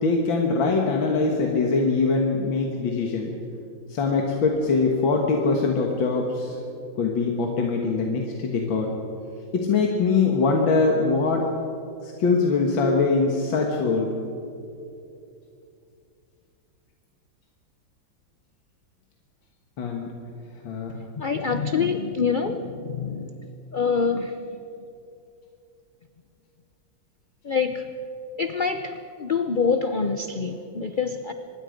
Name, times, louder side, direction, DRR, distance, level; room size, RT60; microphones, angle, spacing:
voice 1, 0.0-3.3 3.9-6.6 7.0-8.9 9.5-11.5 12.0-14.1 19.8-20.1 20.6-20.9, left 4 dB, 80° left, 1 dB, 2.4 m, -22 dB
voice 2, 21.0-24.3 27.4-27.8 28.4-31.3, left 5 dB, 60° left, 8 dB, 0.5 m, -26 dB
25.0 x 21.0 x 5.2 m, 2.6 s
omnidirectional pair, 2.1 m